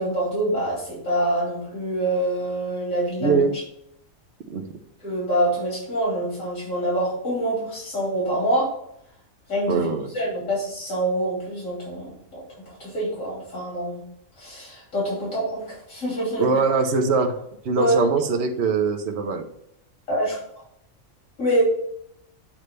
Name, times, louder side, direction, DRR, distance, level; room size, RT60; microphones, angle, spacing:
voice 1, 0.0-3.4 5.0-8.7 9.5-9.9 10.1-14.0 14.4-16.6 17.8-18.1 20.1-20.6 21.4-21.6, right 1 dB, 85° left, -6 dB, 3.3 m, -25 dB
voice 2, 3.2-3.6 4.5-4.6 9.7-10.1 16.4-19.4, right 4 dB, 60° right, 4 dB, 1.0 m, -22 dB
8.7 x 3.2 x 6.6 m, 0.75 s
omnidirectional pair, 1.4 m